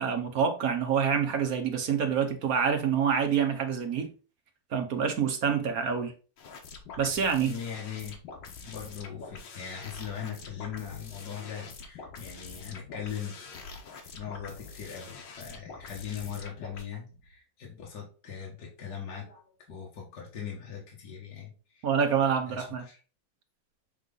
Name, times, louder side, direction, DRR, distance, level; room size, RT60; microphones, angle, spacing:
voice 1, 0.0-4.1 4.7-6.1 7.0-7.5 21.8-22.8, right 7 dB, 55° right, 1.3 m, -27 dB
sound 1, 6.4-16.8, left 4 dB, 80° left, 1.8 m, -45 dB
voice 2, 7.4-8.2 8.6-21.9 22.5-23.0, left 8 dB, 65° left, 2.3 m, -40 dB
7.4 x 3.3 x 3.8 m
omnidirectional pair, 2.0 m